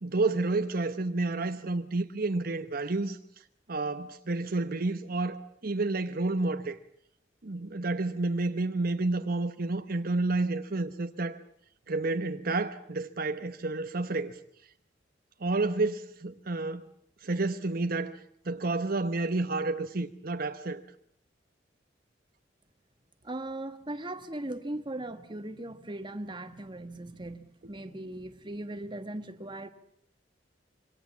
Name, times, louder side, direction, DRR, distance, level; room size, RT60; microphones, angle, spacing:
voice 1, 0.0-3.2 3.7-6.8 7.4-11.4 11.9-14.4 15.4-16.9 17.2-18.2 18.4-20.8, right 2 dB, 55° right, 1.1 m, -30 dB
voice 2, 23.2-29.7, right 1 dB, 25° right, 1.5 m, -38 dB
26.0 x 23.5 x 7.3 m
head